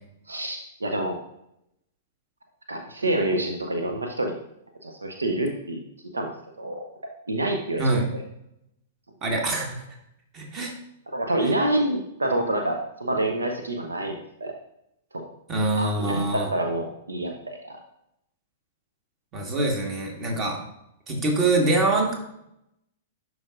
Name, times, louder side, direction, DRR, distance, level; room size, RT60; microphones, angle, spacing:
voice 1, 0.3-1.2 2.7-4.4 4.8-5.8 6.1-6.3 6.6-6.8 7.3-8.0 11.1-14.1 14.4-14.5 15.1-15.3 15.8-17.8, right 1 dB, 80° right, 3 dB, 0.7 m, -27 dB
voice 2, 9.2-9.7 10.3-10.7 15.5-16.5 19.3-20.6 21.1-22.1, right 2 dB, 30° right, 1 dB, 1.7 m, -24 dB
11.5 x 4.8 x 2.6 m, 0.80 s
figure-of-eight pair, 100°, 0 cm